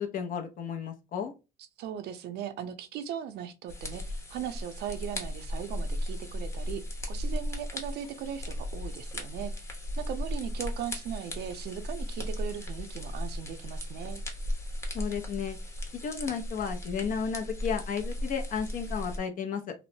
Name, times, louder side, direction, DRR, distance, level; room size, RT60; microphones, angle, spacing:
voice 1, 0.0-1.3 14.9-15.6 15.9-19.7, left 6 dB, 55° left, 0.6 m, -33 dB
voice 2, 1.8-14.2, right 9 dB, 75° right, 0.5 m, -38 dB
sound 1, 3.7-19.2, left 1 dB, 15° left, 0.8 m, -36 dB
3.0 x 2.0 x 2.6 m
cardioid pair, 110°, 17 cm